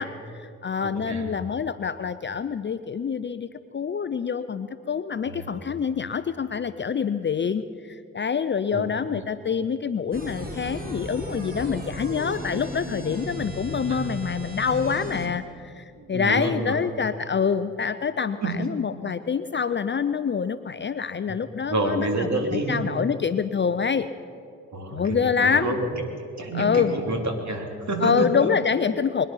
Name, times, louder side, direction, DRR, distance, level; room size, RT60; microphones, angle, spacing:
voice 1, 0.0-24.1 24.9-25.7 26.5-26.9 28.0-29.3, left 6 dB, 30° left, 13 dB, 0.6 m, -26 dB
voice 2, 0.8-1.3 5.2-5.6 8.7-9.2 13.4-13.5 13.9-14.0 15.9-16.8 18.4-18.7 21.7-22.9 24.7-25.9 26.4-28.3, right 2 dB, 45° right, 3 dB, 3.2 m, -28 dB
sound 1, 10.1-15.3, equal, 20° right, 3.5 m, -35 dB
24.0 x 10.5 x 5.7 m, 2.4 s
hypercardioid pair, 45°, 39 cm